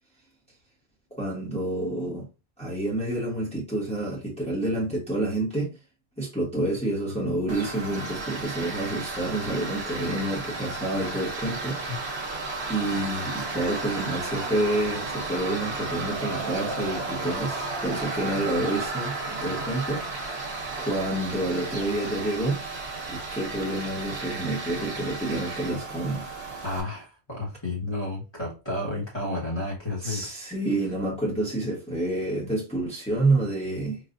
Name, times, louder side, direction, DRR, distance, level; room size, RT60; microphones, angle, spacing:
voice 1, 1.2-2.3 2.6-5.7 6.2-11.8 12.7-20.5 20.8-22.6 23.1-26.2 30.0-34.0, right 1 dB, 5° left, 1.1 m, -28 dB
Tools, 7.5-26.8, right 3 dB, 70° right, 1.1 m, -33 dB
voice 2, 26.6-30.3, left 2 dB, 25° left, 1.2 m, -31 dB
4.0 x 2.4 x 2.5 m
omnidirectional pair, 1.1 m